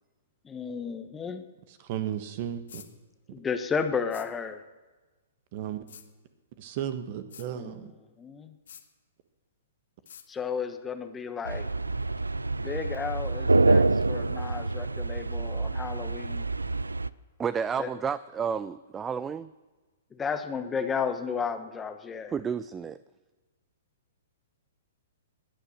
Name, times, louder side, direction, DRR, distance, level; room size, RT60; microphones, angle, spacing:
voice 1, 0.4-1.5 3.3-4.6 7.5-7.7 8.2-8.5 10.3-11.7 12.6-16.5 17.8-17.9 20.1-22.3, left 6 dB, 15° left, 8 dB, 1.1 m, -33 dB
voice 2, 1.7-2.8 5.5-5.8 6.6-7.9, right 10 dB, 45° right, 10 dB, 1.4 m, -34 dB
sound 1, 2.7-2.9 4.1-4.3 5.9-6.1 7.3-7.5 8.7-8.9 10.1-10.3, left 8 dB, 65° left, 1.4 m, -47 dB
sound 2, 11.5-17.1, right 3 dB, 90° right, 0.4 m, -26 dB
voice 3, 17.4-19.5 22.3-23.0, right 6 dB, 15° right, 16 dB, 0.4 m, -31 dB
18.5 x 10.0 x 6.5 m, 1.2 s
figure-of-eight pair, 120°, 0 cm